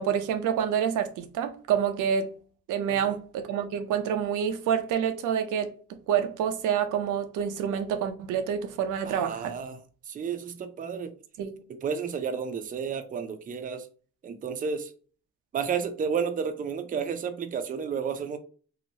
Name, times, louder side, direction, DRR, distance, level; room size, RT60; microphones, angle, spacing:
voice 1, 0.0-2.4 2.7-9.6 11.4-11.6, right 8 dB, 85° right, 0.5 m, -28 dB
voice 2, 9.0-9.8 10.1-11.1 11.8-13.9 14.2-14.9 15.5-18.4, right 6 dB, 30° right, 0.4 m, -31 dB
2.9 x 2.0 x 2.6 m
cardioid pair, 90°, 30 cm